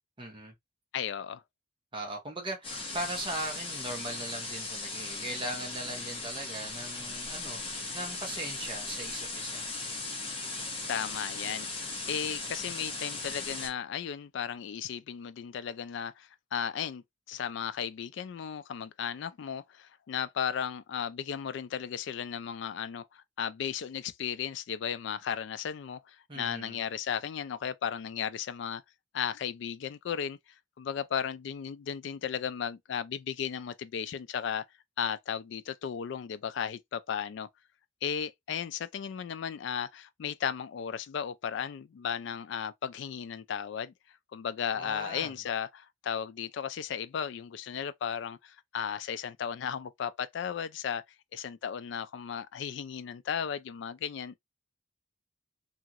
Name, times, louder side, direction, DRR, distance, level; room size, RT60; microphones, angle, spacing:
voice 1, 0.2-0.5 1.9-9.7 26.3-26.8 44.8-45.3, right 1 dB, 25° right, 0.7 m, -39 dB
voice 2, 0.9-1.4 10.9-28.8 29.1-30.4 30.8-34.6 35.0-37.5 38.0-43.9 44.3-51.0 51.3-54.4, left 8 dB, 60° left, 0.3 m, -35 dB
sound 1, 2.6-13.7, left 3 dB, 25° left, 0.8 m, -38 dB
2.8 x 2.7 x 2.4 m
head